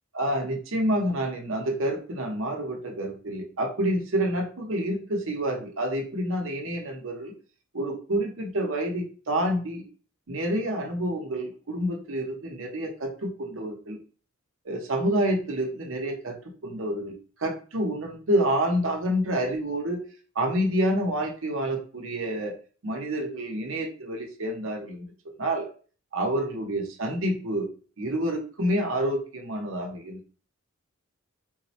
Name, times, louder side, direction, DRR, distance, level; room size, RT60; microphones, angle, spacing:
voice 1, 0.1-7.3 7.7-9.9 10.3-14.0 14.6-16.4 16.6-17.1 17.4-20.0 20.3-22.5 22.8-25.1 25.4-25.7 26.1-27.7 28.0-30.3, right 1 dB, 65° right, 2 dB, 0.8 m, -28 dB
3.9 x 2.1 x 2.7 m, 0.39 s
head